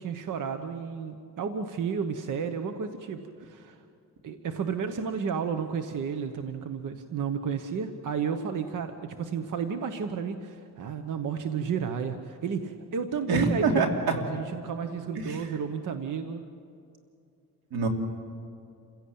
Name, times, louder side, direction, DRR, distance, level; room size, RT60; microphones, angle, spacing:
voice 1, 0.0-3.8 4.2-16.4, right 6 dB, 55° right, 8 dB, 1.2 m, -32 dB
voice 2, 13.3-14.2 15.2-15.4 17.7-17.9, right 3 dB, 90° right, 3 dB, 3.0 m, -25 dB
28.0 x 16.0 x 8.7 m, 2.5 s
cardioid pair, 140°, 36 cm